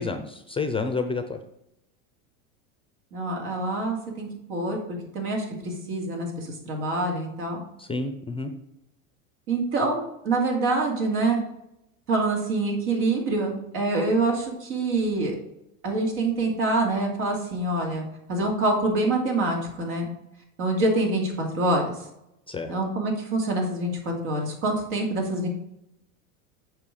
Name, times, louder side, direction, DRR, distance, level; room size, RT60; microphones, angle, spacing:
voice 1, 0.0-1.4 7.8-8.5 22.5-22.7, left 4 dB, 15° left, 7 dB, 0.5 m, -29 dB
voice 2, 3.1-4.8 5.1-7.6 9.5-11.4 12.1-15.3 15.8-20.1 20.6-21.9 22.7-25.5, right 2 dB, 75° right, 0 dB, 2.7 m, -26 dB
7.5 x 4.7 x 4.8 m, 0.83 s
supercardioid pair, 110°, 44 cm